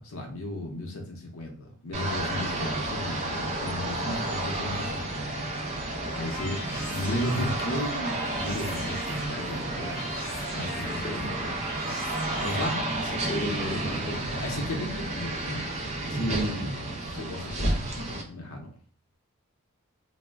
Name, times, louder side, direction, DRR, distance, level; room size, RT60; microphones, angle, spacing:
voice 1, 0.0-5.5 6.1-6.6 6.9-10.0 10.3-11.3 11.7-12.8 14.3-15.6 16.0-18.7, left 1 dB, 75° left, 0.6 m, -35 dB
sound 1, 1.9-18.2, right 2 dB, 30° right, 0.4 m, -32 dB
sound 2, 5.9-12.7, equal, 10° left, 0.9 m, -38 dB
voice 2, 11.0-11.6 13.1-14.3 16.1-16.8, equal, 35° left, 0.6 m, -32 dB
2.3 x 2.0 x 3.4 m
head